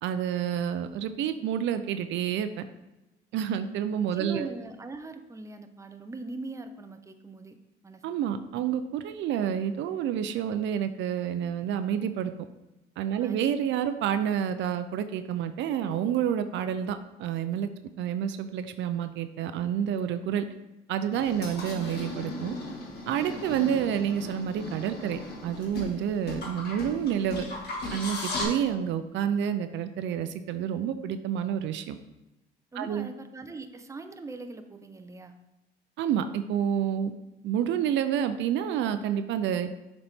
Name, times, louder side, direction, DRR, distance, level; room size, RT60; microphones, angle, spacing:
voice 1, 0.0-2.6 3.3-4.5 8.0-12.3 13.0-17.7 18.0-20.4 20.9-22.6 23.1-27.5 27.9-32.0 32.8-33.1 36.0-37.1 37.4-39.7, right 9 dB, 75° right, 10 dB, 0.4 m, -29 dB
voice 2, 4.1-7.6 7.8-8.0 13.2-13.4 21.7-21.9 32.7-35.3, right 3 dB, 15° right, 8 dB, 0.6 m, -41 dB
sound 1, 21.1-28.4, left 2 dB, 55° left, 2.1 m, -37 dB
6.8 x 4.1 x 3.5 m, 1.0 s
cardioid pair, 85°, 19 cm